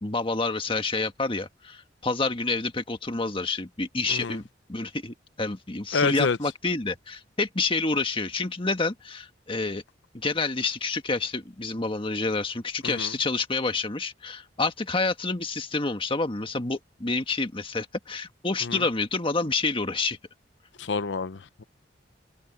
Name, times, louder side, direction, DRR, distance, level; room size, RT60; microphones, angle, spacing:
voice 1, 0.0-4.4 4.7-9.8 10.1-20.2, left 3 dB, 30° left, 1.6 m, -28 dB
voice 2, 5.9-6.4 12.8-13.1 18.6-18.8 20.8-21.6, left 4 dB, 85° left, 0.7 m, -28 dB
open air
head